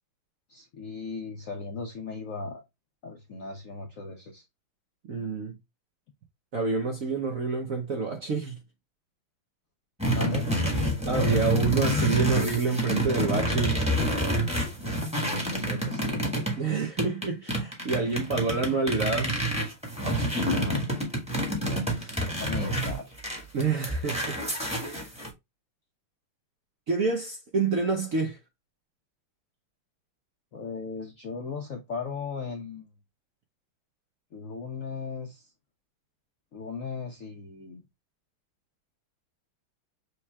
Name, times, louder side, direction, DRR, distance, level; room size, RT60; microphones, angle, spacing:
voice 1, 0.5-2.6 3.0-4.4 10.1-10.5 15.1-16.3 20.3-20.9 22.2-23.2 30.5-32.9 34.3-35.5 36.5-37.8, left 4 dB, 65° left, 0.8 m, -37 dB
voice 2, 5.1-5.6 6.5-8.6 11.1-13.9 16.6-19.5 21.9-22.2 23.5-24.4 24.7-25.1 26.9-28.4, right 4 dB, 60° right, 0.9 m, -28 dB
sound 1, 10.0-16.6 17.0-25.3, right 1 dB, 5° right, 1.2 m, -28 dB
6.4 x 3.1 x 2.3 m
omnidirectional pair, 2.4 m